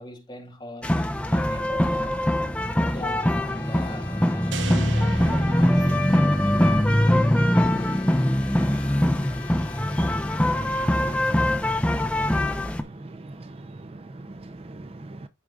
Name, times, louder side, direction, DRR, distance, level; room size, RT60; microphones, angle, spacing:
voice 1, 0.0-2.2 2.9-6.0, left 2 dB, 20° left, 2.2 m, -40 dB
sound 1, 0.8-12.8, left 1 dB, 5° left, 0.7 m, -22 dB
Brass instrument, 3.2-11.4, left 6 dB, 70° left, 2.2 m, -42 dB
sound 2, 4.5-6.8, right 5 dB, 75° right, 0.7 m, -37 dB
voice 2, 12.8-15.3, right 2 dB, 30° right, 0.5 m, -41 dB
14.0 x 4.8 x 2.4 m
head